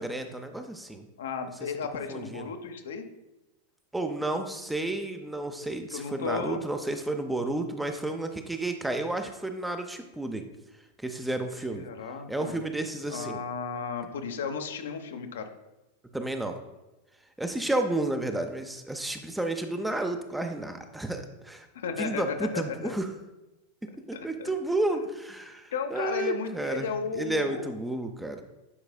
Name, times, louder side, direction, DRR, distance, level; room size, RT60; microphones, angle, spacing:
voice 1, 0.0-1.0 2.1-2.5 3.9-10.4 11.0-11.9 12.3-13.4 16.1-16.6 17.4-21.7 22.0-23.1 24.1-26.9 27.1-28.4, right 2 dB, 5° right, 6 dB, 0.5 m, -31 dB
voice 2, 1.2-3.0 5.9-6.6 11.7-12.6 13.1-15.5 21.7-22.9 24.1-24.5 25.7-27.7, left 5 dB, 60° left, 6 dB, 0.6 m, -34 dB
9.6 x 4.7 x 2.2 m, 1.0 s
figure-of-eight pair, 90°, 0 cm